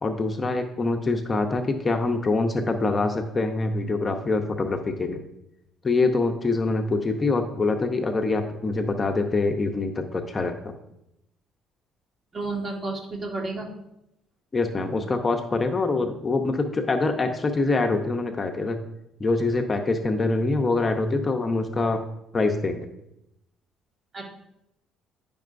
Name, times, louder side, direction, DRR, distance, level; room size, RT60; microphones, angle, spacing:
voice 1, 0.0-5.2 5.8-10.8 14.5-18.8 19.2-22.0 22.3-22.9, left 3 dB, 25° left, 4 dB, 0.6 m, -25 dB
voice 2, 12.3-13.7 24.1-24.2, right 3 dB, 30° right, 0 dB, 1.7 m, -31 dB
10.5 x 5.3 x 2.5 m, 0.84 s
cardioid pair, 105°, 0 cm